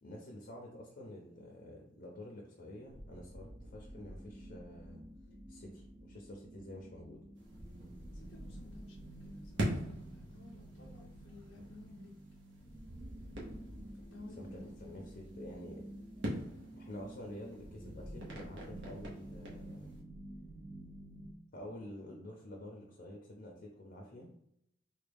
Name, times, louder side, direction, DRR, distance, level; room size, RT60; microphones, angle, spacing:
voice 1, 0.0-5.0 5.5-7.2 14.4-15.8 16.8-19.9 21.5-24.3, left 1 dB, 45° left, -1 dB, 0.6 m, -49 dB
sound 1, 2.8-21.3, right 1 dB, 30° right, 0.6 m, -50 dB
sound 2, 7.4-20.0, right 1 dB, 65° right, 0.9 m, -45 dB
voice 2, 8.1-12.1 14.0-14.7, left 2 dB, 85° left, -3 dB, 0.7 m, -54 dB
3.4 x 2.2 x 3.4 m, 0.77 s
head